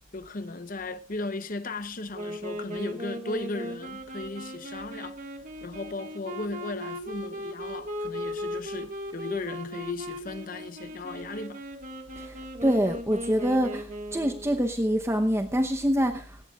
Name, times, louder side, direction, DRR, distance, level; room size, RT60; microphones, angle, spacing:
voice 1, 0.1-5.2 5.6-11.6, left 2 dB, 40° left, 0.8 m, -36 dB
Wind instrument woodwind instrument, 2.1-14.6, equal, 35° right, 1.7 m, -38 dB
voice 2, 12.2-16.4, equal, 10° right, 0.8 m, -26 dB
17.5 x 17.5 x 2.4 m
head